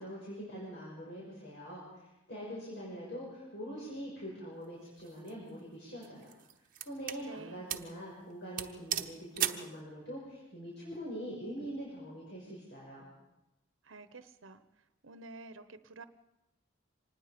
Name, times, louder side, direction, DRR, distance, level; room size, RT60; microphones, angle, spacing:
voice 1, 0.0-2.0 2.3-6.3 6.8-13.1, equal, 60° left, -5 dB, 6.3 m, -43 dB
sound 1, 5.0-5.3 6.0-7.2 7.7-7.9 8.2-8.3 8.6-9.7, right 10 dB, 45° right, 1.0 m, -36 dB
voice 2, 7.2-7.7 13.8-14.6 15.0-16.0, right 3 dB, 80° right, 11 dB, 1.0 m, -49 dB
25.5 x 20.0 x 5.2 m, 0.95 s
head